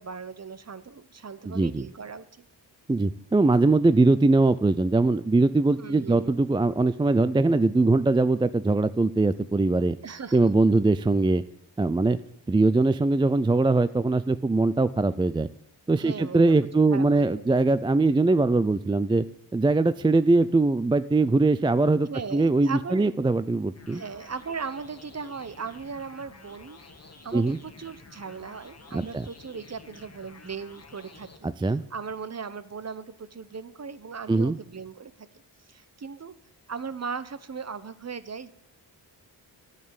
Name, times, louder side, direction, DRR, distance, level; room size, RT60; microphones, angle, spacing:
voice 1, 0.0-2.3 5.8-6.3 10.0-10.5 16.0-16.4 16.7-17.5 22.1-23.1 23.9-26.8 27.2-35.3 35.7-36.3 36.7-38.5, right 5 dB, 35° right, 15 dB, 0.8 m, -38 dB
voice 2, 1.5-1.9 2.9-10.0 10.3-11.4 11.8-12.2 12.5-15.5 15.9-19.3 19.5-24.0 27.3-27.6 28.9-29.3 31.4-31.8 34.3-34.6, right 3 dB, 10° right, 14 dB, 0.3 m, -22 dB
sound 1, 23.8-31.4, left 3 dB, 35° left, 1.5 m, -50 dB
10.5 x 6.7 x 8.7 m, 0.72 s
cardioid pair, 70°, 43 cm